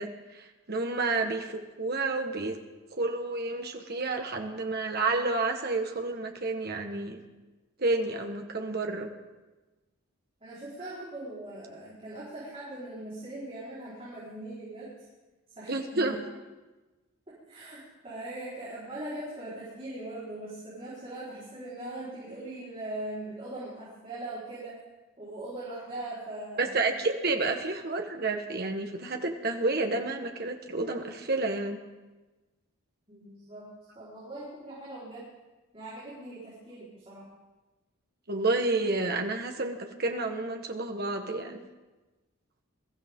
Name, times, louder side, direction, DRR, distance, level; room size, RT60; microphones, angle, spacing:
voice 1, 0.0-2.6 3.0-7.2 7.8-9.1 15.7-16.2 26.6-31.8 38.3-41.6, right 3 dB, 45° right, 4 dB, 1.4 m, -30 dB
voice 2, 10.4-15.1 15.5-16.2 17.5-24.7 25.2-26.8 33.1-33.7 33.9-35.3 35.7-37.3, right 1 dB, 25° right, -9 dB, 4.5 m, -40 dB
22.0 x 14.5 x 3.8 m, 1.2 s
head